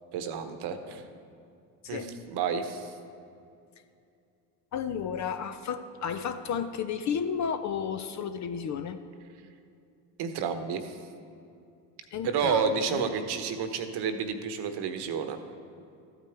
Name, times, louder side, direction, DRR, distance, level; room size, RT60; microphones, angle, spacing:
voice 1, 0.1-1.0 1.9-2.9 10.2-11.0 12.2-15.4, right 6 dB, 55° right, 8 dB, 1.1 m, -30 dB
voice 2, 4.7-9.0 12.1-13.1, left 7 dB, 35° left, 10 dB, 0.5 m, -33 dB
13.5 x 8.7 x 3.4 m, 2.5 s
hypercardioid pair, 80°, 48 cm